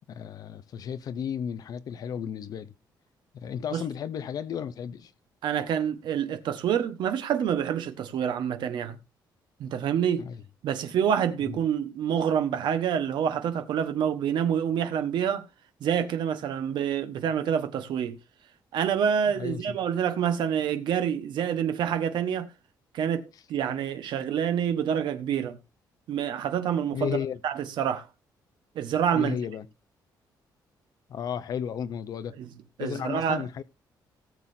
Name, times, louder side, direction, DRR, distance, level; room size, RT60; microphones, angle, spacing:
voice 1, 0.1-2.7 3.3-5.1 10.2-10.4 11.5-11.6 19.4-19.8 26.9-27.4 29.1-29.7 31.1-32.4 32.8-33.6, left 8 dB, 55° left, 0.7 m, -33 dB
voice 2, 5.4-9.0 9.6-10.3 10.6-15.5 15.8-18.2 18.7-22.5 22.9-25.6 26.1-27.2 27.4-28.1 28.7-29.4 32.4-32.5 32.8-33.4, right 8 dB, 75° right, 1.3 m, -27 dB
18.0 x 7.5 x 2.7 m
cardioid pair, 160°, 8 cm